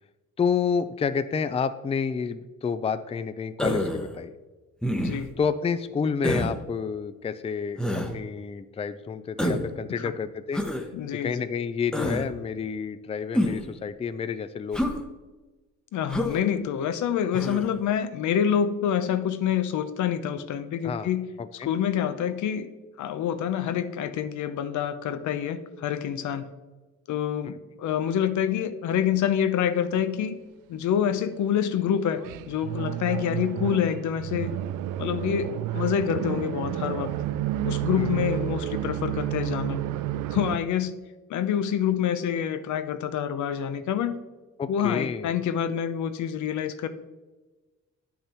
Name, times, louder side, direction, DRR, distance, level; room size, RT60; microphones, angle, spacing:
voice 1, 0.4-4.3 5.4-10.6 11.1-14.9 20.8-21.1 21.4-21.7 27.4-27.5 38.0-38.3 44.6-45.3, left 6 dB, 20° left, 11 dB, 0.4 m, -29 dB
Human voice, 3.6-4.1 4.8-5.3 6.2-6.5 7.8-8.1 9.4-9.7 10.5-10.8 11.9-12.3 13.3-13.7 14.7-15.0 16.1-16.4 17.3-17.7, left 1 dB, 5° left, 0.9 m, -27 dB
voice 2, 5.0-5.3 10.0-10.1 10.9-11.5 15.9-21.2 21.6-22.7 23.0-26.5 27.1-30.4 30.7-34.5 35.0-37.1 37.6-39.8 40.3-40.9 41.3-44.2 44.7-46.9, left 9 dB, 75° left, 11 dB, 0.7 m, -27 dB
sound 1, 32.2-40.6, right 13 dB, 85° right, 0.5 m, -30 dB
9.4 x 5.6 x 4.4 m, 1.2 s
cardioid pair, 90°, 30 cm